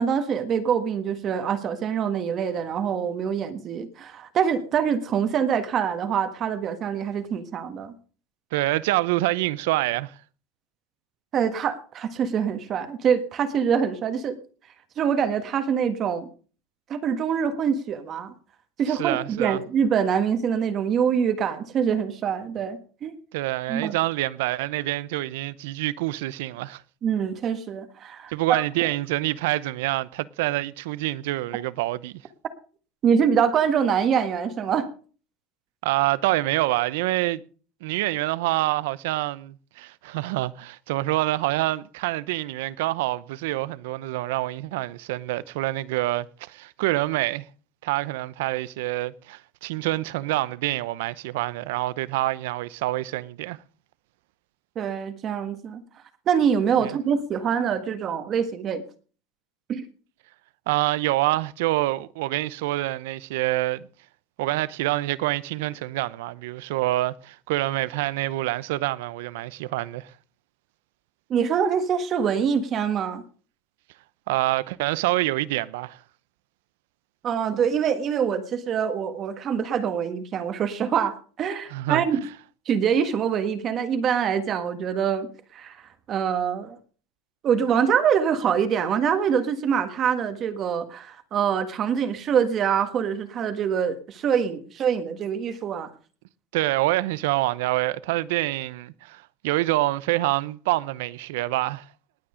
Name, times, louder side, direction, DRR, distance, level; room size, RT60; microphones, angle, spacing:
voice 1, 0.0-7.9 11.3-14.4 15.0-16.2 16.9-18.3 18.8-23.2 23.7-24.0 27.0-28.6 33.0-34.9 54.7-55.8 56.3-58.8 59.7-59.8 71.3-73.2 77.2-82.2 82.6-85.8 86.1-86.8 87.4-95.9, right 7 dB, 30° right, 1.5 m, -25 dB
voice 2, 8.5-10.1 18.9-19.6 23.3-26.8 28.3-32.2 35.8-37.4 37.8-47.5 47.8-53.6 56.8-56.9 60.7-63.9 64.4-70.1 74.3-76.0 81.7-82.0 96.5-101.9, right 17 dB, 80° right, 0.7 m, -26 dB
19.5 x 8.9 x 5.1 m
supercardioid pair, 160°, 0 cm